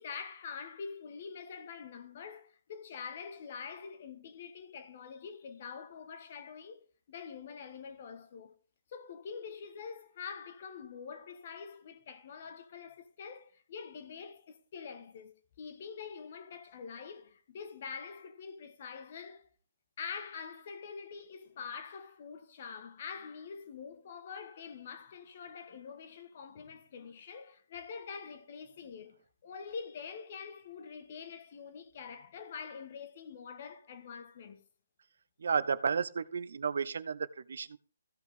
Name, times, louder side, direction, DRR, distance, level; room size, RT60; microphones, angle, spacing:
voice 1, 0.0-6.8 7.1-8.5 8.9-19.5 20.0-34.6, left 6 dB, 45° left, 1.3 m, -45 dB
voice 2, 35.4-37.8, right 6 dB, 70° right, 0.6 m, -32 dB
15.0 x 5.8 x 3.5 m
hypercardioid pair, 150°, 0 cm